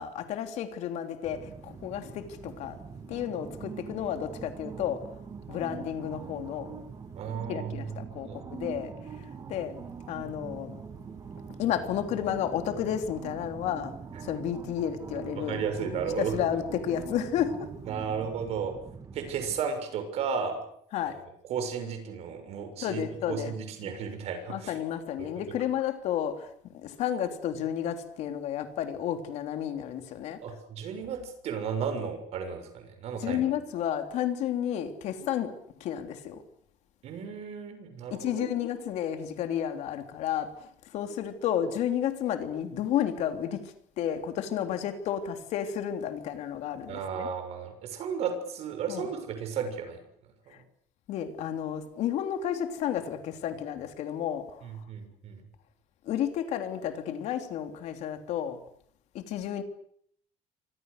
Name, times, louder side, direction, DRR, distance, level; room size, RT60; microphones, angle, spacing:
voice 1, 0.0-2.8 3.1-5.1 5.5-6.8 7.5-9.8 10.1-10.8 11.6-13.9 14.2-17.7 20.9-21.2 22.8-23.5 23.8-23.9 24.5-30.4 33.2-36.4 38.1-47.3 48.9-49.1 50.5-50.6 51.1-54.6 56.0-58.6 59.1-59.6, left 10 dB, 55° left, 3.3 m, -32 dB
sound 1, 1.2-19.6, right 6 dB, 25° right, 2.0 m, -43 dB
voice 2, 7.1-8.0 8.3-8.4 15.4-16.4 17.8-18.7 19.1-20.6 21.0-21.2 21.5-24.7 25.2-25.3 30.4-33.4 37.0-38.5 46.9-50.0 50.5-50.6 54.6-55.4, right 6 dB, 50° right, 6.6 m, -34 dB
28.0 x 25.0 x 6.7 m
cardioid pair, 180°, 14 cm